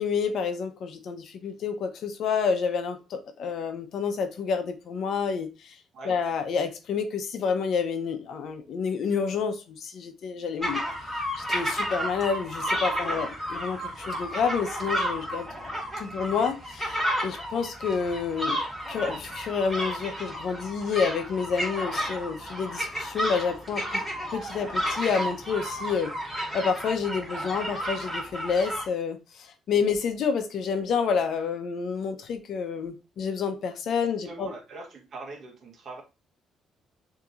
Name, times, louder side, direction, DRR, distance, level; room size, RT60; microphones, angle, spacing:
voice 1, 0.0-5.8 6.1-10.8 11.1-15.5 16.0-18.6 18.9-24.0 24.3-26.1 26.5-34.5, left 6 dB, 60° left, 0.8 m, -29 dB
sound 1, 10.6-28.8, equal, ahead, 2.4 m, -32 dB
voice 2, 34.2-36.0, right 3 dB, 50° right, 1.1 m, -42 dB
6.7 x 2.9 x 2.5 m
cardioid pair, 120°, 0 cm